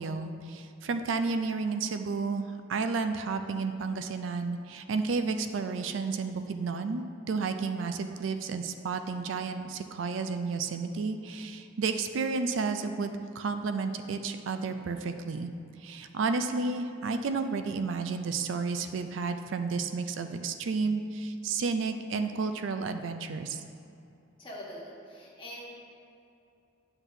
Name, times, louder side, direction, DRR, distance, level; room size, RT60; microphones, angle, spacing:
voice 1, 0.0-2.4 2.7-15.5 15.8-23.6, right 4 dB, 80° right, 8 dB, 0.4 m, -31 dB
voice 2, 24.4-25.7, equal, 25° left, -5 dB, 1.3 m, -43 dB
9.8 x 5.9 x 2.7 m, 2.6 s
head